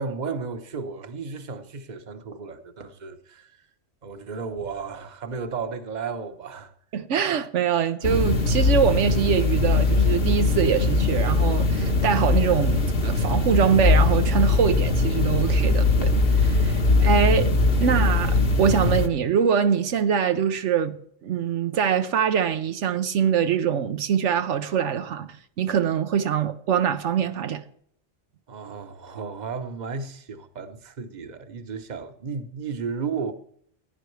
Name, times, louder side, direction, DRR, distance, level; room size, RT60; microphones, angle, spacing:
voice 1, 0.0-3.7 4.0-6.7 28.5-33.3, right 5 dB, 40° right, 1.1 m, -34 dB
voice 2, 6.9-17.5 17.8-21.0 21.2-27.6, right 8 dB, 75° right, 1.0 m, -24 dB
sound 1, 8.0-19.1, left 3 dB, 55° left, 1.5 m, -21 dB
17.0 x 10.5 x 3.2 m
omnidirectional pair, 1.2 m